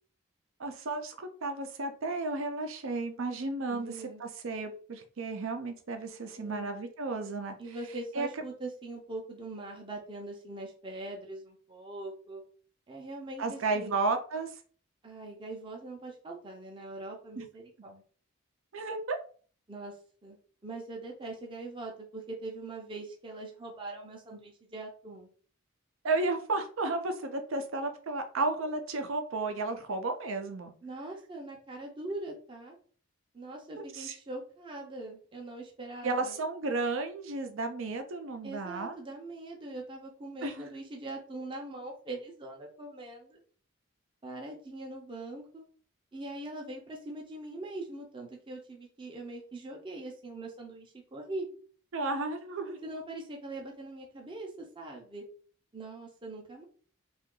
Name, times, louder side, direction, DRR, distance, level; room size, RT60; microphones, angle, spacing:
voice 1, 0.6-7.8 8.1-8.3 13.4-14.5 17.4-17.5 18.7-19.2 21.2-21.3 26.0-30.7 33.9-34.2 36.0-39.0 40.4-40.6 51.9-52.8, right 3 dB, 70° right, 6 dB, 0.5 m, -33 dB
voice 2, 3.7-4.2 6.4-6.7 7.6-12.4 12.9-14.0 15.0-18.0 19.7-20.0 20.2-20.4 20.6-25.3 30.8-32.8 33.3-36.4 38.4-43.4 44.2-45.6 46.1-51.5 52.8-55.2 55.7-56.6, right 2 dB, 25° right, 0 dB, 0.6 m, -42 dB
2.7 x 2.4 x 3.7 m, 0.43 s
head